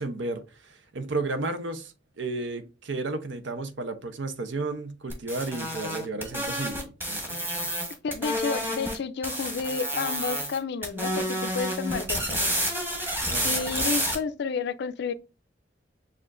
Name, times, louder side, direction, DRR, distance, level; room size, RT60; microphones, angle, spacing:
voice 1, 0.0-6.8 7.1-7.4 13.3-13.6, right 2 dB, 80° right, 0.7 m, -33 dB
sound 1, 5.1-9.0 9.2-10.6 10.8-14.1, equal, 10° right, 1.2 m, -29 dB
voice 2, 8.0-12.6 13.4-15.1, left 5 dB, 65° left, 0.4 m, -31 dB
6.8 x 2.5 x 2.5 m
head